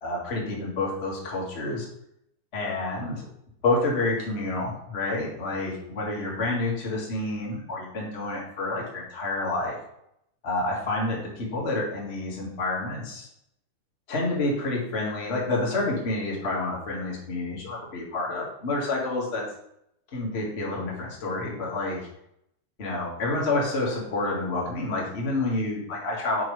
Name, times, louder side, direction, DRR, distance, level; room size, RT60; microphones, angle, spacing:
voice 1, 0.0-1.9 2.5-3.2 3.6-9.8 10.4-13.3 14.1-19.4 20.1-22.0 22.8-26.4, left 2 dB, 35° left, -3 dB, 1.0 m, -28 dB
7.2 x 5.5 x 3.2 m, 0.76 s
omnidirectional pair, 3.9 m